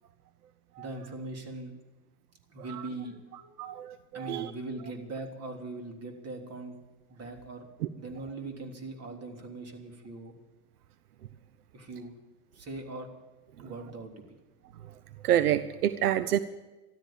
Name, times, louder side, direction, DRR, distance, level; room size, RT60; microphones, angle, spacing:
voice 1, 0.8-1.7 2.5-3.8 4.1-6.8 7.1-7.7 8.0-10.3 11.7-12.2 12.5-13.1 13.6-14.2, right 2 dB, 35° right, 4 dB, 3.5 m, -41 dB
voice 2, 3.6-4.5 15.2-16.4, right 11 dB, 80° right, 13 dB, 0.8 m, -28 dB
13.5 x 13.0 x 7.2 m, 1.1 s
hypercardioid pair, 90°, 44 cm